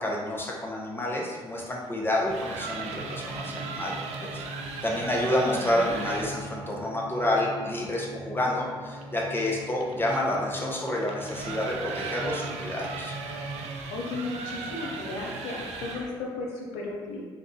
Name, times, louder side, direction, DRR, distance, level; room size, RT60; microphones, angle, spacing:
voice 1, 0.0-3.9 4.3-4.4 4.8-13.2, left 1 dB, 15° left, -2 dB, 0.8 m, -29 dB
sound 1, 2.2-6.4 9.0-16.2, right 4 dB, 65° right, 0.4 m, -37 dB
sound 2, 3.0-13.6, equal, 10° right, 1.4 m, -42 dB
voice 2, 5.5-5.9 13.9-17.3, left 3 dB, 75° left, -1 dB, 0.6 m, -35 dB
3.4 x 2.3 x 2.7 m, 1.4 s
hypercardioid pair, 45°, 12 cm